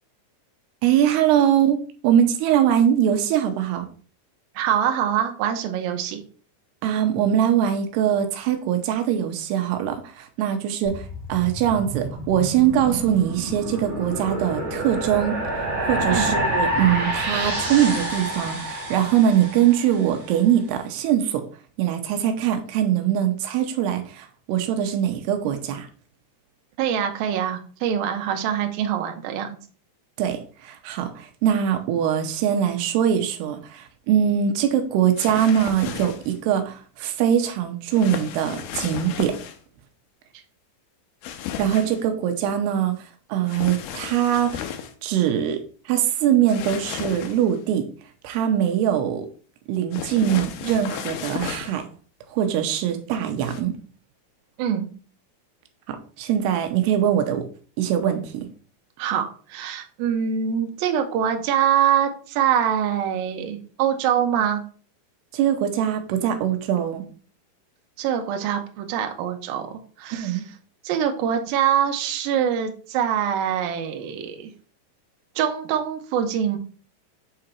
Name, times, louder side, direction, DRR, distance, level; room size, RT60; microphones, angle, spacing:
voice 1, 0.8-3.9 6.8-15.4 15.8-21.5 21.8-25.9 30.2-39.4 41.6-44.6 45.0-47.9 48.2-49.3 49.7-51.9 52.3-53.8 55.9-57.5 57.8-58.5 65.3-67.0 70.1-70.4, right 10 dB, 90° right, 6 dB, 2.8 m, -22 dB
voice 2, 4.6-6.2 16.1-16.3 26.8-29.6 54.6-54.9 59.0-64.6 68.0-70.4 70.8-74.5 75.4-76.6, right 9 dB, 75° right, 5 dB, 2.5 m, -24 dB
sound 1, 10.8-20.2, right 1 dB, 50° right, 1.5 m, -28 dB
sound 2, 35.2-36.4 37.9-39.6 41.2-42.0 43.5-44.9 46.5-47.6 49.9-51.8 53.4-53.6, left 9 dB, 80° left, 2.4 m, -34 dB
7.6 x 3.8 x 4.4 m, 0.40 s
omnidirectional pair, 4.7 m